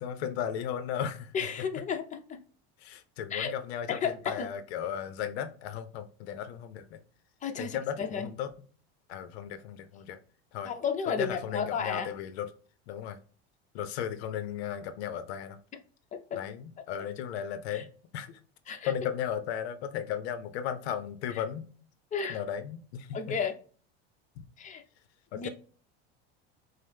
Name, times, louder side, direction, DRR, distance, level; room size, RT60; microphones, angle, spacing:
voice 1, 0.0-1.3 2.8-7.0 7.6-8.5 9.1-10.2 10.5-10.7 11.2-12.5 12.9-13.2 13.7-15.6 16.3-18.4 18.7-21.7 22.3-23.4 24.4-24.5 25.3-25.5, left 9 dB, 80° left, 0.5 m, -35 dB
voice 2, 1.3-2.4 3.3-3.5 3.9-4.5 7.4-8.3 10.6-12.1 16.1-16.4 17.7-17.8 18.7-18.9 22.1-22.4 23.1-23.5 24.6-24.8 25.3-25.5, left 6 dB, 25° left, 0.6 m, -33 dB
5.2 x 2.0 x 3.4 m
supercardioid pair, 100°, 32 cm